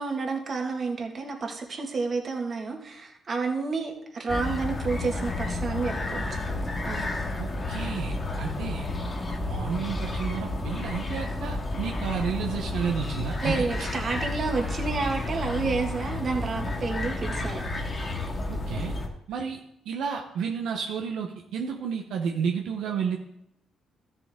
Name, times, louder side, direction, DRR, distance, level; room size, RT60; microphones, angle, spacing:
voice 1, 0.0-7.0 13.4-17.6, right 4 dB, 45° right, 2 dB, 2.0 m, -30 dB
sound 1, 4.3-19.1, left 2 dB, 30° left, 2.1 m, -31 dB
voice 2, 7.4-8.9 9.5-13.5 18.5-18.9 19.3-19.6 19.9-23.2, right 6 dB, 80° right, 2 dB, 1.0 m, -31 dB
13.5 x 6.8 x 3.7 m, 0.78 s
cardioid pair, 85°, 0 cm